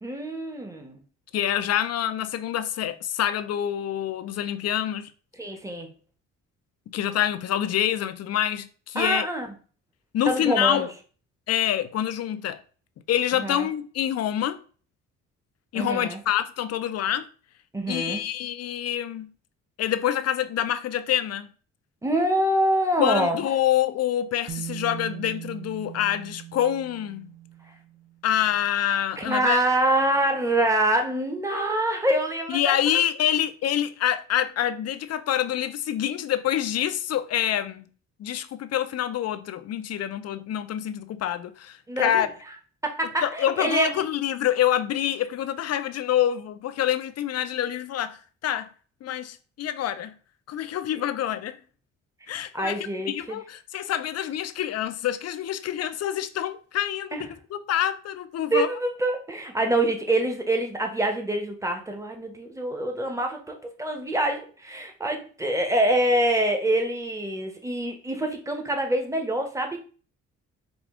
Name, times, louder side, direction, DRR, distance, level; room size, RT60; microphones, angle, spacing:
voice 1, 0.0-1.0 5.4-5.9 8.9-9.5 10.2-10.9 13.4-13.7 15.7-16.2 17.7-18.2 22.0-23.4 29.2-32.8 41.9-42.3 42.8-44.0 52.5-53.4 57.1-57.2 58.5-69.8, right 1 dB, 10° right, 1.0 m, -25 dB
voice 2, 1.3-5.1 6.9-9.3 10.1-10.9 11.5-12.6 13.1-14.6 15.7-17.3 17.9-19.3 19.8-21.5 23.0-27.3 28.2-29.6 32.5-37.8 38.2-42.3 43.2-48.7 49.0-50.2 50.5-51.6 52.3-58.7, left 11 dB, 55° left, 0.5 m, -26 dB
Bass guitar, 24.5-28.4 29.5-29.6, right 14 dB, 45° right, 0.6 m, -40 dB
4.9 x 2.4 x 3.6 m
cardioid pair, 90°, 30 cm